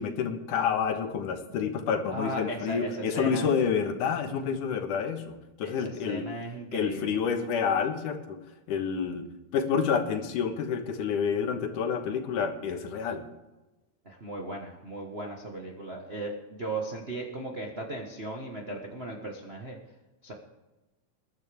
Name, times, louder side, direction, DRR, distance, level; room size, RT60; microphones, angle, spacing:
voice 1, 0.0-6.3 6.7-8.4 8.7-9.3 9.5-13.2, left 6 dB, 80° left, 5 dB, 2.8 m, -29 dB
voice 2, 2.1-3.5 5.6-7.2 14.0-19.8 20.2-20.3, right 1 dB, 50° right, 0 dB, 0.7 m, -37 dB
21.5 x 10.5 x 3.5 m, 1.1 s
omnidirectional pair, 3.7 m